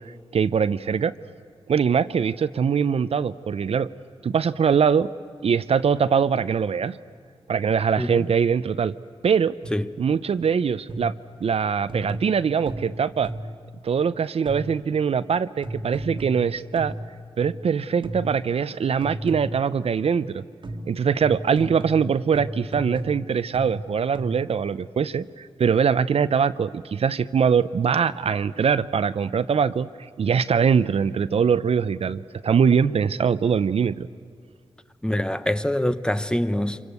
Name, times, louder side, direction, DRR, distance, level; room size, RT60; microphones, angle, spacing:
voice 1, 0.3-1.1 1.7-3.9 4.2-5.1 5.4-7.0 7.5-8.9 9.2-9.6 10.0-11.1 11.4-13.3 13.8-16.9 17.4-20.4 20.9-29.9 30.2-34.1, right 6 dB, 70° right, 0.6 m, -22 dB
voice 2, 8.0-8.3 9.7-9.9 35.0-36.8, left 1 dB, 10° left, 0.7 m, -25 dB
sound 1, 9.6-10.0 10.9-11.3 11.9-13.7 14.5-14.9 15.6-17.7 18.0-18.5 19.0-19.8 20.6-24.6, right 1 dB, 50° right, 1.5 m, -35 dB
27.0 x 24.0 x 8.2 m
wide cardioid pair, 130°, 11 cm